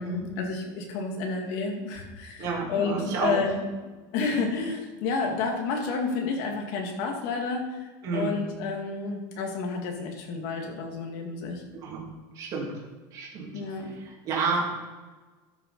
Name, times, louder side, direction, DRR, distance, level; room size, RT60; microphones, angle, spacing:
voice 1, 0.0-3.6 4.1-11.6 13.5-13.9, left 4 dB, 60° left, 1 dB, 2.2 m, -30 dB
voice 2, 2.4-3.5 8.0-8.4 11.8-12.0 12.3-12.7 13.1-14.7, right 4 dB, 40° right, -3 dB, 2.6 m, -30 dB
13.0 x 6.6 x 4.2 m, 1.3 s
cardioid pair, 175°, 10 cm